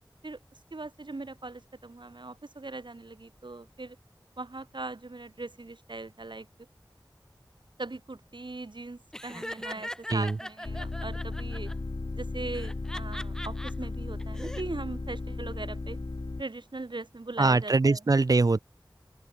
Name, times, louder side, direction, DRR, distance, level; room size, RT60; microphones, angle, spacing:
voice 1, 0.7-4.0 4.4-6.5 7.8-11.7 12.1-16.0 16.4-18.0, right 2 dB, 70° right, 1.7 m, -40 dB
Laughter, 9.1-11.7 12.5-13.7 14.2-14.6, equal, 5° left, 4.3 m, -40 dB
sound 1, 10.6-16.4, left 2 dB, 70° left, 1.9 m, -35 dB
voice 2, 17.4-18.6, right 3 dB, 45° right, 0.4 m, -22 dB
open air
wide cardioid pair, 50°, 8 cm